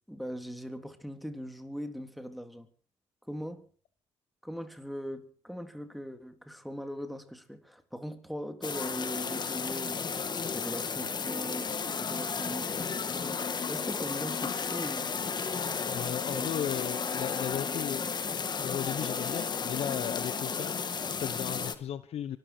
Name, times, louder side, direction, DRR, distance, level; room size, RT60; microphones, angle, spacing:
voice 1, 0.1-2.7 3.3-3.7 4.4-10.1 10.5-15.1 16.3-16.5, equal, ahead, 3.3 m, -40 dB
sound 1, 8.6-21.7, left 5 dB, 40° left, 2.2 m, -33 dB
voice 2, 15.8-18.2 18.6-22.4, left 10 dB, 60° left, 1.1 m, -36 dB
24.0 x 13.0 x 4.6 m
supercardioid pair, 70°, 12 cm